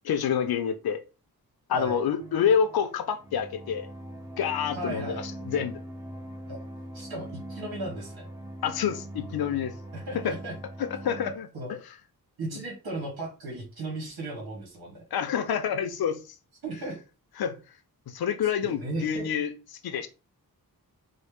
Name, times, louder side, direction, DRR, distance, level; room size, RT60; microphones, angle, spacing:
voice 1, 0.1-1.0 1.7-3.9 4.4-5.8 8.6-9.7 10.2-10.4 10.8-11.5 12.5-12.6 15.1-16.2 17.4-17.6 18.1-20.1, left 8 dB, 80° left, 0.6 m, -28 dB
sound 1, 2.2-11.4, right 1 dB, 10° right, 0.5 m, -41 dB
voice 2, 4.7-5.2 6.5-6.6 6.9-8.3 9.9-10.5 11.5-11.8 12.4-15.0 16.6-17.0 18.6-19.3, right 2 dB, 80° right, 1.5 m, -36 dB
4.0 x 2.1 x 3.4 m
wide cardioid pair, 145°, 36 cm